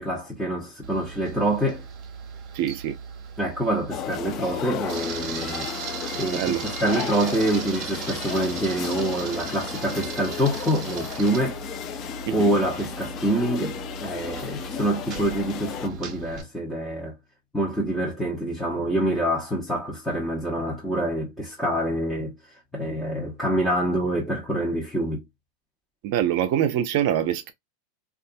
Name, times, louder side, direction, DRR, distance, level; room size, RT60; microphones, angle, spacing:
voice 1, 0.0-1.8 3.4-5.7 6.1-11.6 12.3-17.2 17.5-22.3 22.7-25.2, right 1 dB, 10° left, 0.9 m, -26 dB
Camera, 0.8-16.4, right 6 dB, 40° right, 1.0 m, -37 dB
voice 2, 2.5-2.9 6.3-6.6 12.3-12.5 26.0-27.5, right 10 dB, 60° right, 0.5 m, -24 dB
sound 1, 3.9-15.9, left 9 dB, 40° left, 0.4 m, -34 dB
2.6 x 2.4 x 2.5 m
hypercardioid pair, 105°, 0 cm